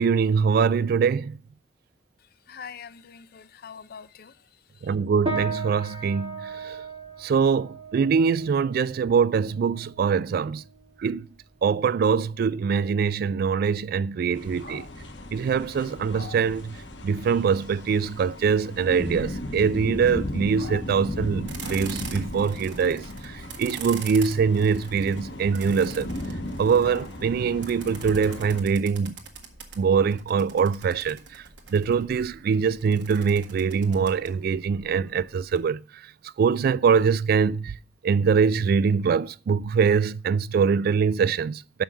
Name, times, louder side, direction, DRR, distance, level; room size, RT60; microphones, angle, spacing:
voice 1, 0.0-1.4 4.8-6.8 7.2-10.6 11.0-11.3 11.6-14.8 15.3-16.7 17.0-26.1 26.6-29.2 29.8-31.4 31.7-35.8 36.4-37.8 38.0-41.8, right 6 dB, 55° right, 0.3 m, -23 dB
voice 2, 2.2-5.0, left 6 dB, 55° left, 0.5 m, -45 dB
sound 1, 5.3-14.9, right 3 dB, 30° right, 1.8 m, -38 dB
sound 2, 14.3-28.6, left 1 dB, 85° left, 1.2 m, -36 dB
sound 3, 21.1-35.6, right 5 dB, 75° right, 1.5 m, -44 dB
6.2 x 5.5 x 6.9 m
head